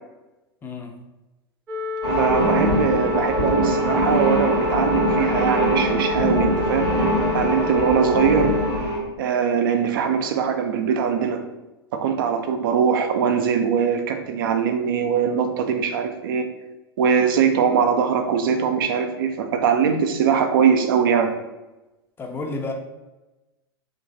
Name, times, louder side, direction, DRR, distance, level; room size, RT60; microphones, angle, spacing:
voice 1, 0.6-1.0 22.2-22.7, left 3 dB, 15° left, 3 dB, 0.4 m, -31 dB
sound 1, 1.7-8.7, left 4 dB, 20° right, 0.7 m, -29 dB
sound 2, 2.0-9.0, right 1 dB, 80° left, 1.0 m, -22 dB
voice 2, 2.2-8.5 9.2-11.4 11.9-16.5 17.0-21.3, right 7 dB, 60° right, 6 dB, 0.4 m, -21 dB
3.0 x 2.5 x 2.5 m, 1.0 s
figure-of-eight pair, 95°, 13 cm